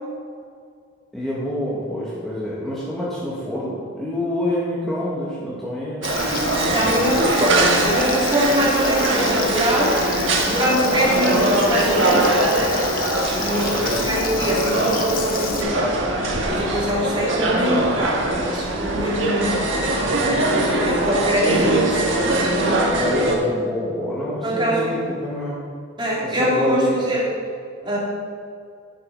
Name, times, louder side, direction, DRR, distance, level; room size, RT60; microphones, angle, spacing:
voice 1, 1.1-6.1 13.4-14.5 22.9-25.6 26.2-27.0, left 1 dB, ahead, -9 dB, 1.6 m, -27 dB
Frying (food), 6.0-15.6, left 6 dB, 45° left, 1.0 m, -31 dB
sound 1, 6.0-23.4, right 2 dB, 65° right, 1.5 m, -21 dB
voice 2, 6.7-10.0 10.4-12.4 13.3-16.1 16.5-20.0 20.4-22.8 24.4-25.0 26.0-27.3 27.8-28.0, equal, 25° right, -6 dB, 2.8 m, -23 dB
10.5 x 7.3 x 5.3 m, 2.2 s
head